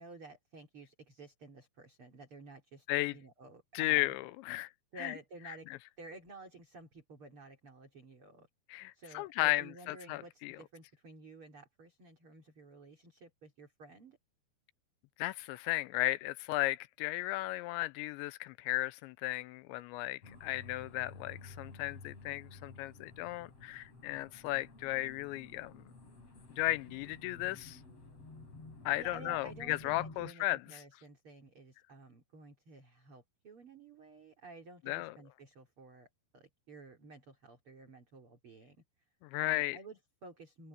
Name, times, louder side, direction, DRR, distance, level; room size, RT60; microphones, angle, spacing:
voice 1, 0.0-2.9 3.1-4.2 4.9-8.5 8.9-14.2 29.0-38.8 39.4-40.7, right 3 dB, 30° right, 3.8 m, -53 dB
voice 2, 3.7-4.7 5.0-5.1 8.7-10.6 15.2-25.8 26.6-27.8 28.9-30.6 34.9-35.1 39.2-39.8, left 19 dB, 85° left, 2.9 m, -35 dB
sound 1, 20.2-30.3, left 3 dB, 35° left, 5.9 m, -52 dB
open air
omnidirectional pair, 5.3 m